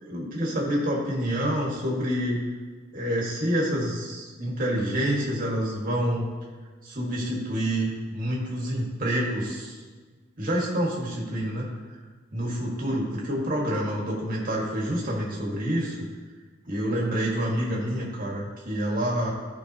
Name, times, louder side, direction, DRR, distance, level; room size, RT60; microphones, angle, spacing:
voice 1, 0.0-2.4 2.9-6.2 6.8-9.8 10.4-11.7 12.3-16.1 16.7-19.3, equal, 45° right, -3 dB, 1.9 m, -27 dB
14.0 x 5.3 x 3.0 m, 1.4 s
head